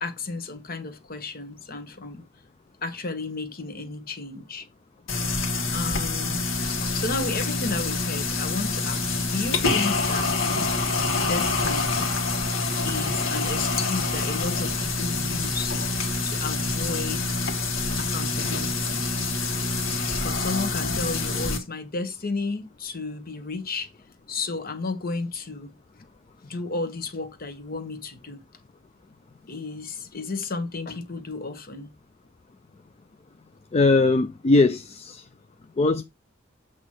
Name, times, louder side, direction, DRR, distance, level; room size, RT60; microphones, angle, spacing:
voice 1, 0.0-2.3 2.8-4.7 5.7-6.4 6.9-10.5 11.2-11.9 12.8-15.8 16.2-17.5 18.0-19.0 20.1-23.9 24.3-25.7 26.4-28.4 29.5-31.9, left 3 dB, 50° left, 1.3 m, -33 dB
sound 1, 5.1-21.6, left 3 dB, 70° left, 1.7 m, -26 dB
voice 2, 33.7-35.3 35.8-36.0, left 3 dB, 30° left, 0.4 m, -20 dB
7.9 x 3.0 x 6.2 m
head